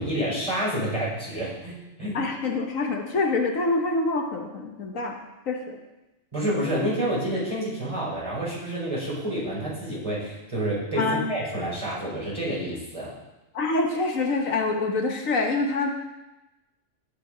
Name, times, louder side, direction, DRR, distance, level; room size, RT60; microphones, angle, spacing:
voice 1, 0.0-2.2 6.3-13.1, right 1 dB, 25° right, -7 dB, 4.8 m, -29 dB
voice 2, 2.1-5.2 5.5-5.8 6.5-6.6 11.0-11.3 13.5-15.9, left 3 dB, 75° left, 3 dB, 1.5 m, -26 dB
16.0 x 5.7 x 5.0 m, 1.0 s
omnidirectional pair, 1.4 m